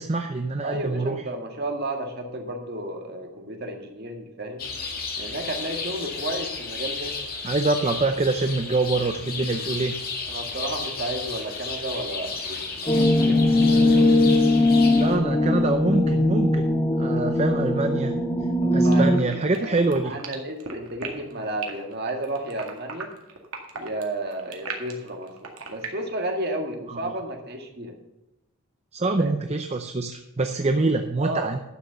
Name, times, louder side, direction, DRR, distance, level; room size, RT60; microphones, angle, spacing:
voice 1, 0.0-1.2 7.4-9.9 15.0-16.7 17.0-18.2 18.7-20.1 26.9-27.1 28.9-31.6, right 3 dB, 30° right, 6 dB, 0.5 m, -25 dB
voice 2, 0.6-4.6 5.2-7.1 10.3-14.1 18.6-23.1 23.7-27.9 29.2-29.3 31.2-31.5, right 1 dB, 45° right, 3 dB, 1.8 m, -32 dB
sound 1, 4.6-15.2, left 4 dB, 40° left, 2.0 m, -33 dB
sound 2, 12.9-19.2, left 1 dB, 15° left, 0.7 m, -20 dB
sound 3, 18.8-25.9, right 5 dB, 75° right, 1.9 m, -36 dB
11.5 x 6.3 x 6.7 m, 0.92 s
head